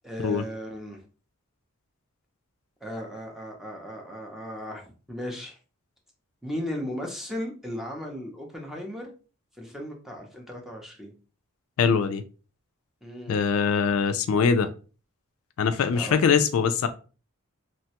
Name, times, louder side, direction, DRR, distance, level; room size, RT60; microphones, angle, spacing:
voice 1, 0.0-1.0 2.8-5.6 6.4-9.1 9.6-11.1 13.0-13.5 15.8-16.1, equal, ahead, 0.5 m, -36 dB
voice 2, 11.8-12.2 13.3-14.7 15.6-16.9, left 6 dB, 70° left, 0.3 m, -22 dB
3.0 x 2.2 x 2.8 m
head